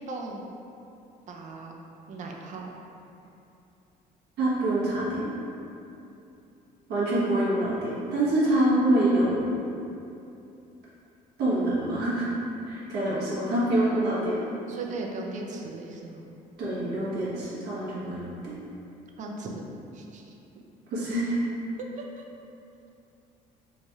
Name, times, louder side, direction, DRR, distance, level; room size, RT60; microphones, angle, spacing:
voice 1, 0.1-0.5 1.3-1.7 2.1-2.7 14.7-16.3 19.2-19.7 19.9-20.3 21.8-22.2, right 2 dB, 45° right, 0 dB, 0.5 m, -37 dB
voice 2, 4.4-5.3 6.9-9.5 11.4-12.2 12.6-14.4 16.6-18.5 20.9-21.4, right 1 dB, 75° right, -8 dB, 1.1 m, -25 dB
3.2 x 2.3 x 4.0 m, 2.7 s
cardioid pair, 110°, 17 cm